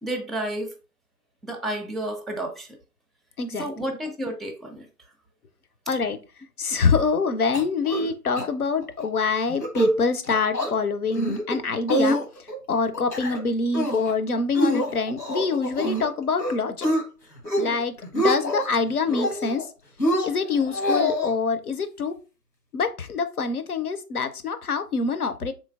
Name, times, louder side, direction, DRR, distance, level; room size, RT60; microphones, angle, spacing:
voice 1, 0.0-0.7 1.4-2.8 3.6-4.9, right 1 dB, ahead, 4 dB, 0.3 m, -31 dB
voice 2, 3.4-3.7 5.9-6.2 6.6-16.9 17.5-19.7 20.2-22.2 22.7-25.5, left 4 dB, 65° left, 10 dB, 0.5 m, -25 dB
sound 1, 7.5-8.1 8.4-8.5 8.8-9.1 9.5-9.9 10.3-10.7 11.1-11.6 11.9-12.6 12.9-13.4 13.7-14.1 14.5-16.1 16.4-17.0 17.4-17.8 18.0-18.7 19.1-19.6 20.0-21.3, equal, 90° left, 1.1 m, -25 dB
3.7 x 3.1 x 2.3 m, 0.33 s
figure-of-eight pair, 155°, 49 cm